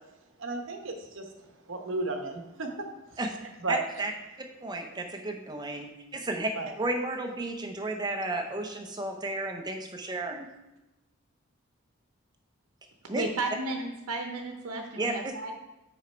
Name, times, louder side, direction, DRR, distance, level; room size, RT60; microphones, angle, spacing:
voice 1, 0.4-3.2 3.6-3.8 6.5-6.7, right 3 dB, 60° right, 4 dB, 0.9 m, -35 dB
voice 2, 3.7-4.1 4.6-6.5 6.8-10.5 13.1-13.2 15.0-15.3, right 2 dB, 20° right, 3 dB, 0.7 m, -33 dB
voice 3, 13.2-15.5, right 2 dB, 85° right, 3 dB, 0.8 m, -33 dB
6.3 x 5.0 x 4.4 m, 0.99 s
head